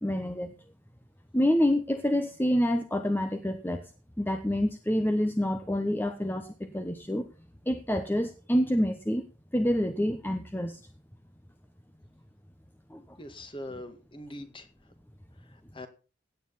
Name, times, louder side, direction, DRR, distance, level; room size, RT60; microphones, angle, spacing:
voice 1, 0.0-0.5 1.3-3.9 4.2-7.3 7.7-9.2 9.5-10.8 12.9-13.2, equal, 10° left, 8 dB, 1.0 m, -27 dB
voice 2, 13.2-14.7 15.5-15.9, left 1 dB, 25° left, 9 dB, 2.0 m, -42 dB
17.0 x 9.3 x 4.2 m, 0.33 s
head